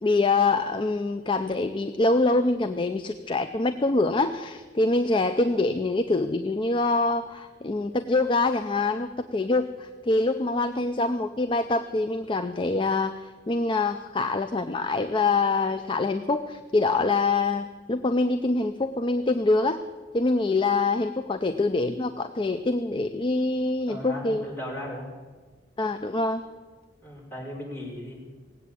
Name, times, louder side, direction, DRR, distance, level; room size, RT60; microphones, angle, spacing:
voice 1, 0.0-19.8 20.1-24.4 25.8-26.4, left 3 dB, 30° left, 8 dB, 0.5 m, -25 dB
voice 2, 23.9-25.1 27.0-28.2, equal, 10° left, -5 dB, 4.7 m, -36 dB
18.0 x 8.4 x 8.4 m, 1.4 s
head